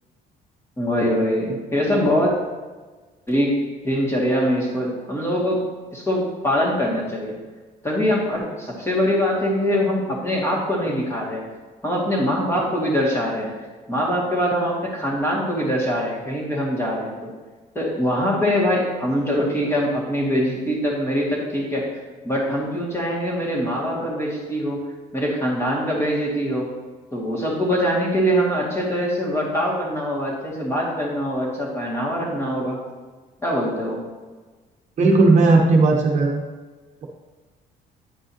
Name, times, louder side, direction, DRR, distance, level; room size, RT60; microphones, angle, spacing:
voice 1, 0.8-2.3 3.3-3.5 3.8-5.7 5.9-7.4 7.8-11.4 11.8-13.5 13.9-17.2 17.7-21.9 22.2-24.9 25.1-26.7 27.1-32.8 33.4-34.0, equal, 15° left, -4 dB, 2.2 m, -23 dB
voice 2, 35.0-36.4, right 3 dB, 45° right, 0 dB, 1.0 m, -16 dB
9.3 x 5.3 x 2.9 m, 1.3 s
cardioid pair, 110°, 17 cm